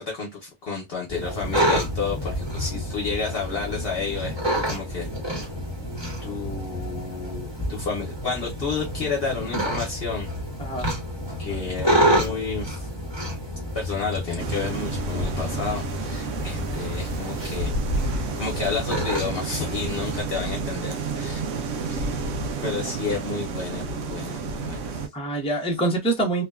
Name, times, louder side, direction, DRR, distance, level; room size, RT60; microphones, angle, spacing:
voice 1, 0.0-4.3 4.7-5.1 6.2-10.3 11.4-12.9 13.7-17.7 18.0-21.4 21.9-22.2 22.6-25.0, left 5 dB, 60° left, 0.9 m, -31 dB
sound 1, 1.1-20.2, equal, 25° right, 1.0 m, -29 dB
sound 2, 14.4-25.1, right 3 dB, 90° right, 0.9 m, -30 dB
voice 2, 21.8-22.2 25.1-26.4, right 2 dB, 5° left, 0.6 m, -26 dB
2.8 x 2.1 x 2.2 m
omnidirectional pair, 1.2 m